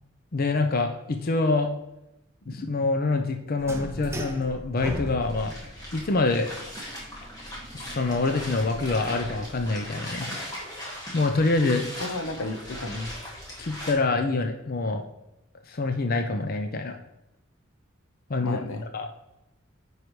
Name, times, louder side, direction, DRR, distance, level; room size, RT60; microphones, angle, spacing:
voice 1, 0.3-1.7 2.5-5.5 5.9-6.5 7.7-10.3 11.1-11.9 13.6-15.0 15.7-16.9 18.3-18.6 18.9-19.1, left 3 dB, 45° left, 5 dB, 0.6 m, -25 dB
sound 1, 3.6-9.7, right 1 dB, 15° right, 0.6 m, -39 dB
sound 2, 5.2-13.9, equal, 20° left, 2.0 m, -39 dB
voice 2, 12.0-13.1 18.4-18.9, left 2 dB, 80° left, 8 dB, 0.8 m, -33 dB
9.7 x 4.8 x 3.1 m, 0.91 s
head